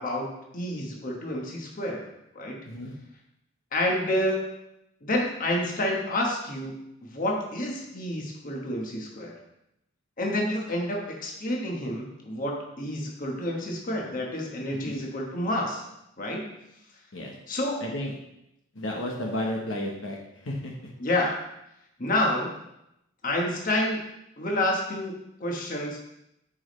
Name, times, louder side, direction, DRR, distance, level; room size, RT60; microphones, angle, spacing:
voice 1, 0.0-2.1 2.3-2.6 3.7-4.5 5.0-6.7 7.1-9.4 10.2-15.8 16.2-16.5 17.5-17.8 21.0-21.3 22.0-22.5 23.2-24.0 24.4-26.0, left 1 dB, 45° left, -1 dB, 1.3 m, -29 dB
voice 2, 17.8-18.1 18.7-20.2 20.4-20.7, left 1 dB, 70° left, -1 dB, 1.1 m, -32 dB
8.3 x 5.2 x 3.2 m, 0.84 s
head